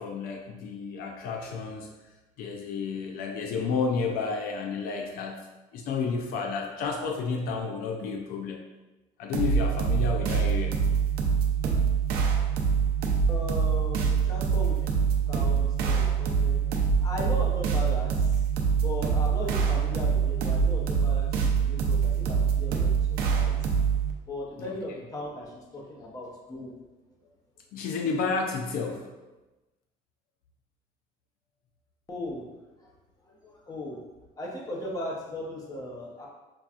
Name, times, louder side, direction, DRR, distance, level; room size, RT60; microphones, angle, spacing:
voice 1, 0.0-1.9 2.4-5.5 5.7-8.6 9.2-10.8 24.7-24.8 27.7-29.1, left 5 dB, 70° left, 2 dB, 0.4 m, -31 dB
sound 1, 9.3-24.1, right 6 dB, 80° right, 0.5 m, -25 dB
voice 2, 13.3-15.0 15.3-18.4 18.8-23.8 24.3-26.8 32.1-32.5 32.8-32.9 33.3-34.0 34.4-36.3, left 1 dB, 25° left, -2 dB, 0.8 m, -37 dB
5.7 x 2.3 x 2.4 m, 1.1 s
cardioid pair, 145°, 15 cm